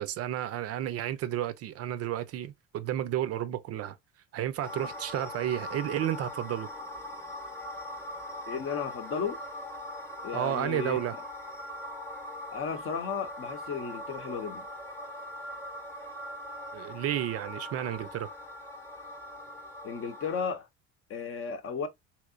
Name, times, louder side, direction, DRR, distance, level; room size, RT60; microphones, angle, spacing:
voice 1, 0.0-4.0 4.3-6.7 10.3-11.2 16.7-18.3, right 11 dB, 50° right, 0.5 m, -32 dB
sound 1, 4.6-20.5, left 1 dB, 5° left, 0.8 m, -41 dB
voice 2, 8.5-9.4 10.2-11.0 12.5-14.7 19.8-20.7 21.1-21.9, left 6 dB, 40° left, 0.8 m, -34 dB
3.1 x 2.9 x 2.4 m
supercardioid pair, 90°, 32 cm